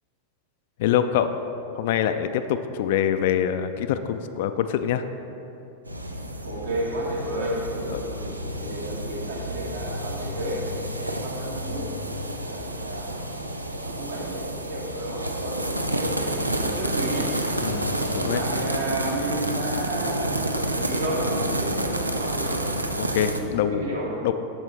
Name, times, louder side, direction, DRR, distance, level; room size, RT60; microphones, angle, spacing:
voice 1, 0.8-1.4 1.7-5.0 7.9-8.0 17.6-18.4 23.0-23.9 24.2-24.3, left 10 dB, 50° left, 10 dB, 0.3 m, -25 dB
sound 1, 5.9-23.4, right 1 dB, 85° right, 0.4 m, -29 dB
voice 2, 6.4-13.2 13.8-17.3 18.2-22.7 23.3-24.1, right 1 dB, 70° right, -4 dB, 1.6 m, -32 dB
7.8 x 6.8 x 3.2 m, 2.8 s
figure-of-eight pair, 90°, 0 cm